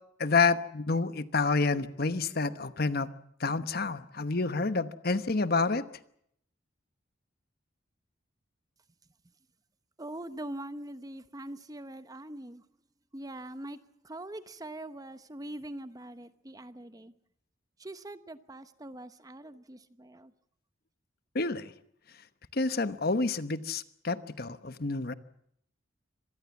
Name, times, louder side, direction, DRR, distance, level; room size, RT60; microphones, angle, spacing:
voice 1, 0.2-3.1 3.4-5.9 21.3-21.7 22.5-25.1, left 4 dB, 50° left, 12 dB, 1.1 m, -28 dB
voice 2, 10.0-12.6 13.1-13.8 14.0-17.1 17.8-20.3, right 1 dB, 20° right, 12 dB, 0.9 m, -43 dB
25.5 x 19.0 x 7.2 m, 0.70 s
head